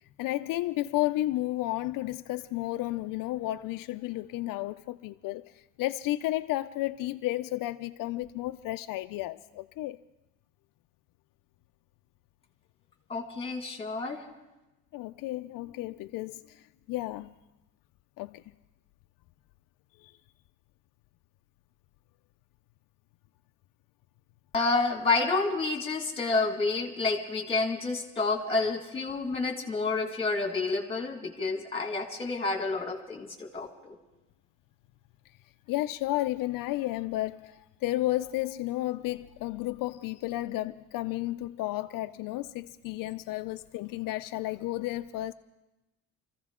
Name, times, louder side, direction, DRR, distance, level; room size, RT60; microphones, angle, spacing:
voice 1, 0.2-10.0 14.9-17.3 18.2-18.4 20.0-20.1 35.7-45.3, left 16 dB, 75° left, 0.5 m, -32 dB
voice 2, 13.1-14.2 24.5-33.9, left 3 dB, 15° left, 1.8 m, -29 dB
26.0 x 15.0 x 3.6 m
cardioid pair, 165°, 33 cm